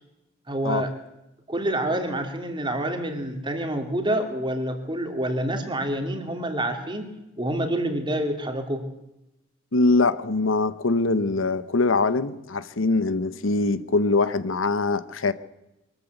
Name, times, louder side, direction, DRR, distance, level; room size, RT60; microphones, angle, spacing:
voice 1, 0.5-0.9 1.5-8.8, right 1 dB, 25° right, 2.7 m, -27 dB
voice 2, 9.7-15.3, left 3 dB, 80° left, 0.9 m, -23 dB
23.0 x 14.0 x 8.1 m
head